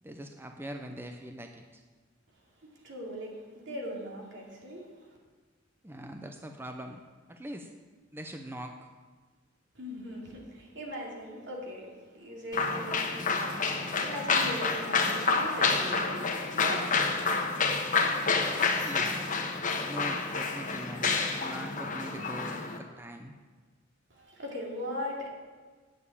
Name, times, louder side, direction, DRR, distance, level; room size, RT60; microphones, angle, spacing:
voice 1, 0.0-1.8 5.8-7.0 7.3-7.7 8.1-8.9 18.7-19.3 19.8-23.3, right 1 dB, 10° right, 5 dB, 0.6 m, -42 dB
voice 2, 2.8-4.9 9.7-16.9 24.1-25.3, equal, 65° right, -1 dB, 2.6 m, -39 dB
sound 1, 12.5-22.8, left 4 dB, 40° left, 1.2 m, -29 dB
9.0 x 6.9 x 8.5 m, 1.4 s
head